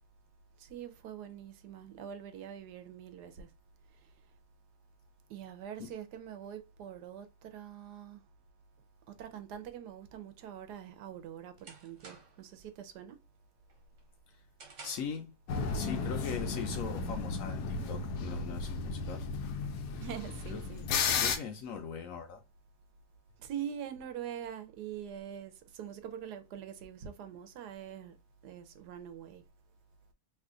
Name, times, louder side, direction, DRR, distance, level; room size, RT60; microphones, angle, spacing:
voice 1, 0.6-3.5 5.3-8.2 9.1-13.2 20.0-20.9 23.4-28.1 28.4-29.4, right 9 dB, 85° right, 1.2 m, -44 dB
sound 1, 10.8-12.5 12.9-13.3 13.7-15.2, right 4 dB, 55° right, 1.3 m, -53 dB
voice 2, 14.8-15.3 15.7-19.2 20.5-20.6 21.2-22.4, left 6 dB, 65° left, 0.9 m, -40 dB
sound 2, 15.5-21.4, left 5 dB, 85° left, 1.2 m, -34 dB
3.2 x 2.3 x 3.7 m
omnidirectional pair, 1.7 m